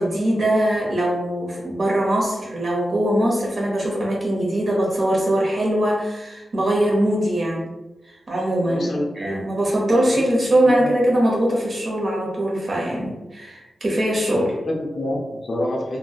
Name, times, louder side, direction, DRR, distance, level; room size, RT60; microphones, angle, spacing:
voice 1, 0.0-7.7 8.3-8.9 9.1-14.5, right 1 dB, 45° right, -3 dB, 0.9 m, -21 dB
voice 2, 8.7-9.4 10.1-10.2 10.6-10.9 14.3-16.0, left 1 dB, 55° left, -1 dB, 0.5 m, -27 dB
3.0 x 2.7 x 2.3 m, 1.1 s
wide cardioid pair, 150°, 0 cm